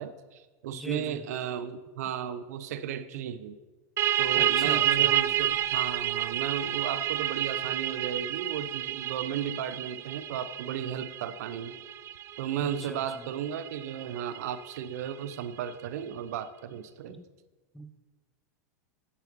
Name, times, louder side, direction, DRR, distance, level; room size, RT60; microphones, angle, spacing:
voice 1, 0.0-3.6 4.2-11.8 12.4-17.2, right 9 dB, 75° right, 13 dB, 0.8 m, -35 dB
voice 2, 0.7-1.2 4.4-5.1 12.6-13.3 17.1-17.2 17.7-18.0, right 1 dB, ahead, 8 dB, 0.9 m, -42 dB
sound 1, 4.0-15.3, right 11 dB, 30° right, 0.4 m, -30 dB
9.8 x 8.2 x 6.8 m, 1.3 s
hypercardioid pair, 120°, 9 cm